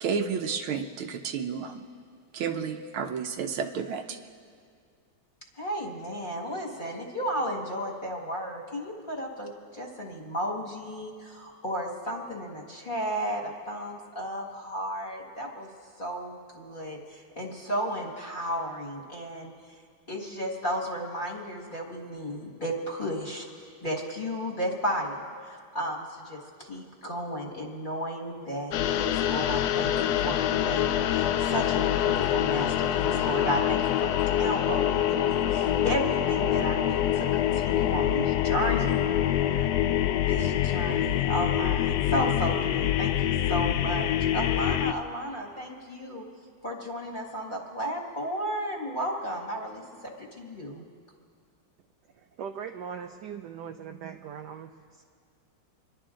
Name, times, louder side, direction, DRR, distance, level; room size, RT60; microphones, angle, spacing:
voice 1, 0.0-1.8 2.3-4.2, right 6 dB, 85° right, 5 dB, 1.7 m, -31 dB
voice 2, 5.6-15.7 16.0-19.5 20.1-29.9 30.2-39.0 39.4-39.7 40.2-46.2 46.6-50.9, equal, 25° left, -1 dB, 1.7 m, -33 dB
sound 1, 28.7-44.9, left 11 dB, 80° left, 0.8 m, -25 dB
voice 3, 52.1-55.0, right 7 dB, 70° right, 7 dB, 1.0 m, -40 dB
28.0 x 11.5 x 3.8 m, 2.2 s
omnidirectional pair, 2.2 m